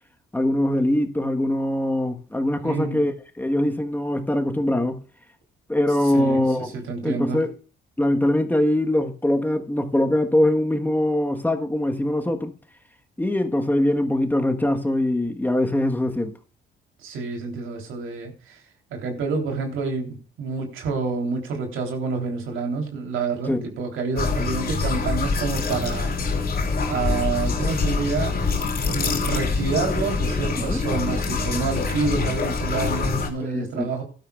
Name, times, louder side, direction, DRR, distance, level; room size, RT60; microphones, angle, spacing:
voice 1, 0.3-5.0 5.7-6.7 7.0-7.5 8.0-12.5 13.2-16.4 23.5-23.6 30.6-30.8 33.4-33.9, left 1 dB, 10° left, 1.3 m, -22 dB
voice 2, 2.6-3.0 6.1-6.4 6.7-7.4 17.0-18.6 18.9-26.1 26.9-28.4 28.9-34.0, right 4 dB, 85° right, 3.5 m, -28 dB
sound 1, 24.2-33.3, left 4 dB, 50° left, 3.4 m, -25 dB
15.5 x 12.0 x 2.4 m
cardioid pair, 90°, 20 cm